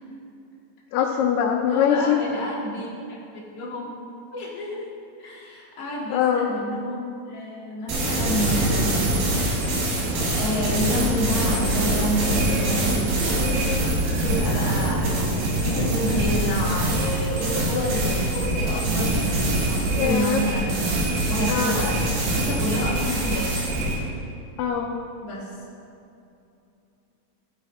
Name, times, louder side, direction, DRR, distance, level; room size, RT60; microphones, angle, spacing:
voice 1, 0.9-2.2 6.1-6.5 20.0-20.4 21.5-21.8 24.6-24.9, left 8 dB, 90° left, 0 dB, 2.8 m, -22 dB
voice 2, 1.7-4.0 4.3-4.9 5.2-7.0 7.3-9.3 10.0-20.9 21.3-23.6 25.2-25.5, equal, 30° left, -6 dB, 1.9 m, -29 dB
sound 1, 7.9-24.0, right 1 dB, 70° right, 3.5 m, -24 dB
14.5 x 8.8 x 4.2 m, 2.6 s
omnidirectional pair, 4.5 m